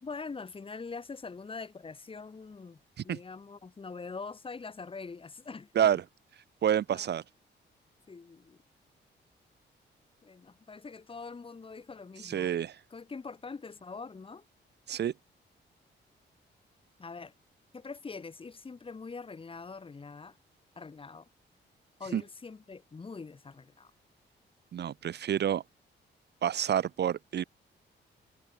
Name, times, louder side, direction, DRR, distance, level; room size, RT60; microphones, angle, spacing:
voice 1, 0.0-6.0 6.9-7.1 8.1-8.6 10.2-12.5 12.9-14.4 17.0-17.3 17.7-20.4 20.8-21.3 22.0-23.9, left 4 dB, 30° left, 2.4 m, -43 dB
voice 2, 6.6-7.2 12.2-12.7 14.9-15.1 22.1-22.2 24.7-25.6 26.4-27.4, right 9 dB, 60° right, 1.5 m, -28 dB
cardioid pair, 125°, 19 cm